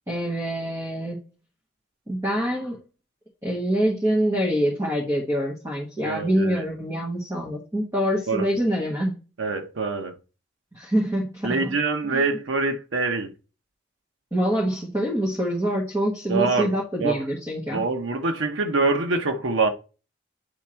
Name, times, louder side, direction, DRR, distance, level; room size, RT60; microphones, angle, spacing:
voice 1, 0.1-1.2 2.1-2.8 3.4-9.1 10.7-11.7 12.1-12.2 14.3-17.8, equal, 15° right, 1.4 m, -25 dB
voice 2, 6.0-6.7 8.3-8.5 9.4-10.1 11.4-13.3 16.3-16.7 17.0-17.2 17.7-19.7, right 3 dB, 90° right, 0.8 m, -25 dB
9.0 x 3.5 x 4.4 m
head